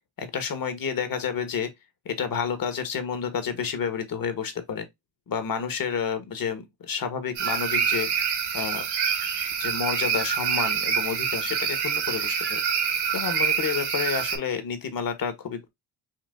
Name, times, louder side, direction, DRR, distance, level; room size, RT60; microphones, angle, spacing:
voice 1, 0.2-1.7 2.0-4.9 5.3-8.1 8.5-8.9 9.6-12.6 13.1-15.7, left 6 dB, 55° left, 1.3 m, -30 dB
sound 1, 7.4-14.4, right 7 dB, 70° right, 1.4 m, -26 dB
5.8 x 2.5 x 2.5 m
cardioid pair, 80°, 41 cm